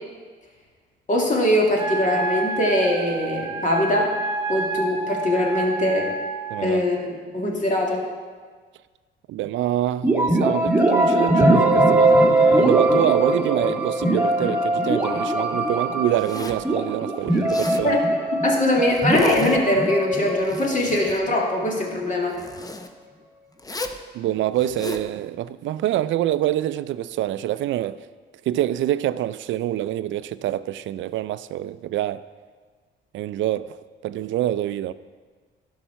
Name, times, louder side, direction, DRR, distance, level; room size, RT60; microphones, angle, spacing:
voice 1, 1.1-4.1 4.5-6.1 6.6-8.0 17.8-18.0 18.4-22.4, left 1 dB, 40° left, 2.3 m, -22 dB
Wind instrument woodwind instrument, 1.8-6.6, right 3 dB, 25° right, 1.2 m, -29 dB
voice 2, 6.5-6.8 9.3-18.0 24.1-28.0 28.5-32.2 33.1-34.9, right 13 dB, 75° right, 0.4 m, -26 dB
sound 1, 10.0-21.7, right 1 dB, 5° right, 1.7 m, -21 dB
Zipper (clothing), 16.1-16.7 17.3-17.9 18.9-19.6 20.2-21.2 22.3-22.9 23.6-24.0 24.5-25.1, left 2 dB, 20° left, 0.7 m, -36 dB
11.5 x 5.6 x 5.7 m
cardioid pair, 90°, 20 cm